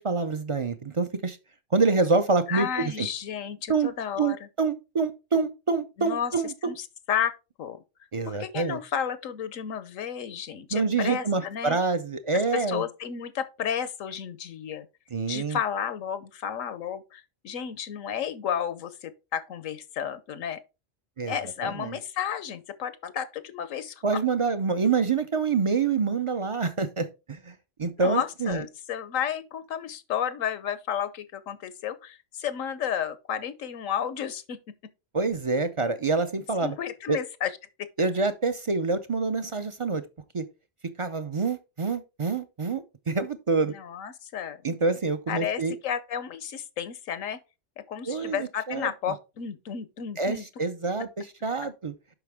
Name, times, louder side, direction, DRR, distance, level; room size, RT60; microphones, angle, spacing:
voice 1, 0.0-1.4 1.7-3.1 3.7-3.9 4.2-6.5 8.1-8.8 10.7-12.8 15.1-15.6 21.2-21.4 21.6-22.0 24.0-28.6 35.1-36.8 37.1-37.2 38.0-40.0 40.3-40.4 41.0-43.7 44.6-45.8 48.1-48.9 50.2-51.9, right 4 dB, 40° right, 0.4 m, -26 dB
voice 2, 2.5-4.4 6.0-7.3 7.6-7.8 8.3-11.8 12.5-14.9 15.3-20.6 21.3-24.2 28.0-34.6 36.6-37.9 43.7-44.6 45.3-47.4 47.8-50.4, left 8 dB, 90° left, 1.2 m, -32 dB
7.9 x 6.0 x 3.5 m
omnidirectional pair, 1.3 m